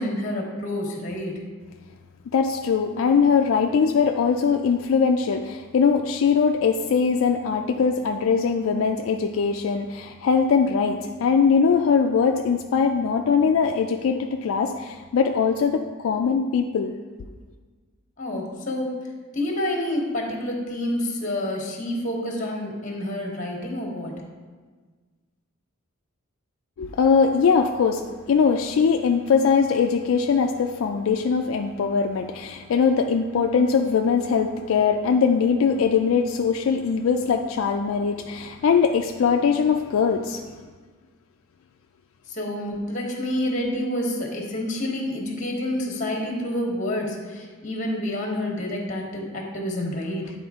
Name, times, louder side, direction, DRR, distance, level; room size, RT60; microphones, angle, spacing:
voice 1, 0.0-1.4 18.2-18.9 19.3-24.1 42.3-50.3, left 1 dB, 35° left, 0 dB, 1.2 m, -28 dB
voice 2, 2.3-16.9 26.8-40.5, left 6 dB, 75° left, 4 dB, 0.3 m, -21 dB
9.5 x 4.2 x 3.6 m, 1.4 s
head